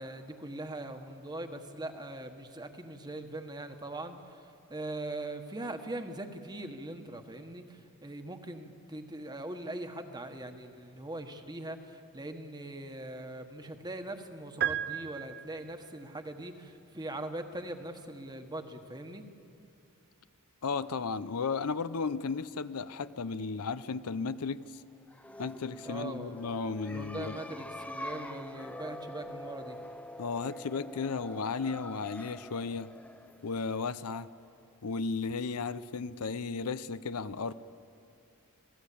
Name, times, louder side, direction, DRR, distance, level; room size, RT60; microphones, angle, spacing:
voice 1, 0.0-19.2 25.8-26.4 26.9-29.8, right 1 dB, 20° right, 6 dB, 1.4 m, -41 dB
sound 1, 14.6-15.9, right 10 dB, 50° right, 0.9 m, -34 dB
voice 2, 20.6-24.6 25.4-27.4 30.2-32.9 33.4-34.3 34.8-37.5, left 4 dB, 80° left, 14 dB, 0.7 m, -34 dB
sound 2, 25.0-34.5, left 1 dB, 5° left, 0.5 m, -45 dB
28.0 x 18.0 x 8.6 m, 2.6 s
head